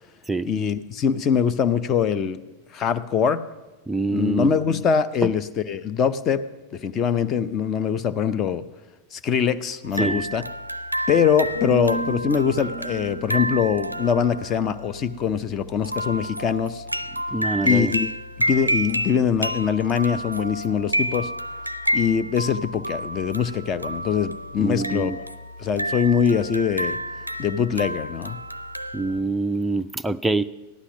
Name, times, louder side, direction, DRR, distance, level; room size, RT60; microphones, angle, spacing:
voice 1, 0.4-2.4 2.7-3.4 4.1-6.4 6.7-8.6 9.1-10.4 11.1-16.8 17.6-18.1 18.5-21.3 21.9-25.1 25.6-27.0 27.4-28.4, left 7 dB, 30° left, 13 dB, 0.6 m, -23 dB
voice 2, 3.9-4.5 5.2-5.3 10.0-10.2 17.3-17.9 24.6-25.2 28.9-30.5, right 3 dB, 5° right, 8 dB, 0.3 m, -25 dB
sound 1, 9.8-29.2, equal, 90° right, 0.4 m, -30 dB
sound 2, 11.5-15.4 15.9-16.2, right 4 dB, 75° left, 3.8 m, -36 dB
14.5 x 11.5 x 5.9 m, 1.1 s
figure-of-eight pair, 90°, 0 cm